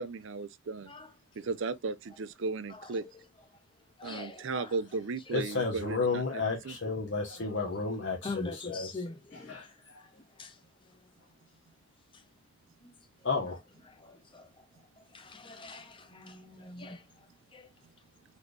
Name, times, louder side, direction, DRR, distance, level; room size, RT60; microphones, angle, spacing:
voice 1, 0.0-0.9 1.4-3.0 4.0-6.9, right 3 dB, 65° right, 0.5 m, -36 dB
voice 2, 0.9-1.5 2.7-3.1 3.5-3.6 4.0-4.8 7.2-7.3 8.2-11.1 12.1-12.3 12.8-13.3 13.8-14.7 15.0-17.7, left 3 dB, 25° left, 0.6 m, -45 dB
voice 3, 5.3-8.9 9.5-10.0 13.2-13.6, left 4 dB, 55° left, 1.0 m, -32 dB
4.1 x 3.3 x 3.2 m
head